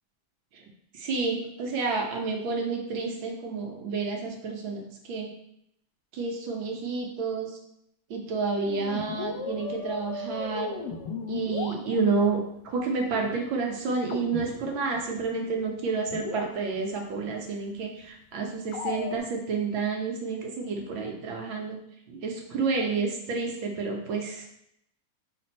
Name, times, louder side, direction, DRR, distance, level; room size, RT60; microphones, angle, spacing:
voice 1, 0.9-4.8 5.1-5.3 6.1-7.5 8.1-10.7 11.3-12.4 12.7-21.8 22.1-24.4, right 4 dB, 90° right, 1 dB, 1.8 m, -30 dB
sound 1, 8.6-12.3 14.1-15.0 15.3-15.4 15.8-15.9 16.1-17.0 18.7-19.2, left 5 dB, 70° left, 1.2 m, -36 dB
6.0 x 3.8 x 4.2 m, 0.77 s
omnidirectional pair, 2.1 m